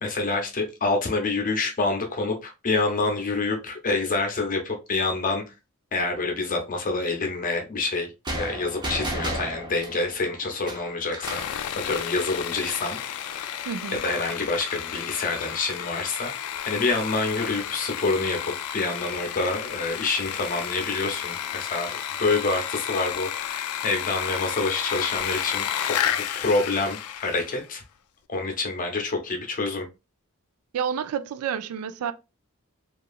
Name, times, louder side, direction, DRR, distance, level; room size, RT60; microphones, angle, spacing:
voice 1, 0.0-5.4 5.9-13.0 13.2-13.5 13.9-16.3 16.7-27.8 28.3-29.9, left 3 dB, 40° left, 0.7 m, -27 dB
sound 1, 8.3-11.6, right 1 dB, 20° right, 0.7 m, -33 dB
Sawing, 11.2-27.7, left 10 dB, 85° left, 0.3 m, -32 dB
voice 2, 13.7-14.0 30.7-32.1, right 8 dB, 90° right, 0.3 m, -29 dB
2.8 x 2.4 x 2.3 m
head